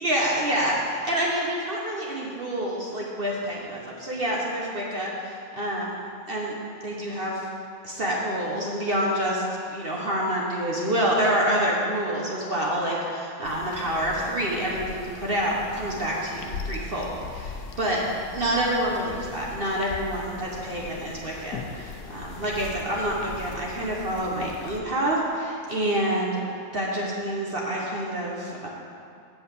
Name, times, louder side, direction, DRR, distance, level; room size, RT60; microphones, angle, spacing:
voice 1, 0.0-6.0 6.3-6.6 6.8-7.5 7.8-18.0 18.3-26.4 26.7-28.7, right 1 dB, 40° right, -3 dB, 1.1 m, -27 dB
sound 1, 13.4-24.8, left 5 dB, 85° left, 1.2 m, -40 dB
8.0 x 5.8 x 6.9 m, 2.5 s
omnidirectional pair, 1.6 m